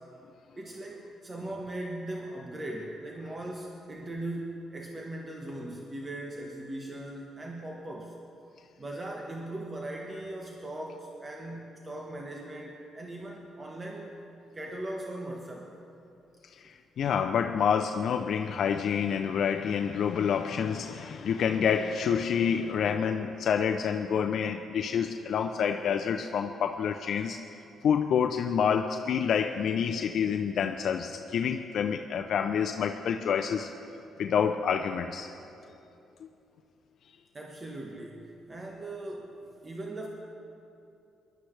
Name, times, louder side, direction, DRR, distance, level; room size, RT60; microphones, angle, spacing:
voice 1, 0.6-8.2 8.8-14.2 14.5-15.7 37.3-39.3 39.6-40.1, right 1 dB, 25° right, -1 dB, 1.3 m, -39 dB
voice 2, 16.4-27.4 27.8-33.7 34.2-35.3 36.2-36.3, left 7 dB, 65° left, 5 dB, 0.5 m, -28 dB
20.0 x 12.0 x 3.3 m, 2.7 s
cardioid pair, 90°, 0 cm